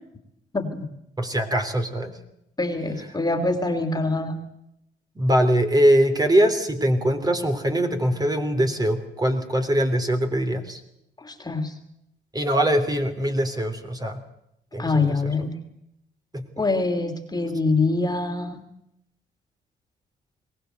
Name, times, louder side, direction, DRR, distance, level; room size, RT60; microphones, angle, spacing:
voice 1, 0.5-0.8 2.6-4.3 11.2-11.7 14.8-15.5 16.6-18.6, left 3 dB, 20° left, 5 dB, 3.0 m, -24 dB
voice 2, 1.2-2.2 5.1-10.8 12.3-14.2 14.7-15.3 16.3-16.4, right 1 dB, 20° right, 6 dB, 3.4 m, -22 dB
22.5 x 18.5 x 8.0 m, 0.79 s
cardioid pair, 90°, 20 cm